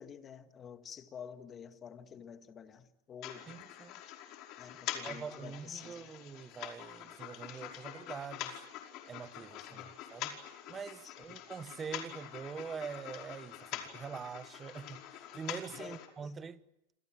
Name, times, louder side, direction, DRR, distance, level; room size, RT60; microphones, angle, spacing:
voice 1, 0.0-3.5 4.6-6.1 9.7-9.9 11.0-11.1 15.8-16.3, left 7 dB, 25° left, 2.0 m, -49 dB
sound 1, 3.2-16.1, left 11 dB, 45° left, 5.1 m, -45 dB
voice 2, 3.5-3.9 5.0-8.6 9.1-10.4 10.7-16.6, right 6 dB, 20° right, 1.1 m, -44 dB
29.5 x 26.0 x 7.7 m
supercardioid pair, 145°, 0 cm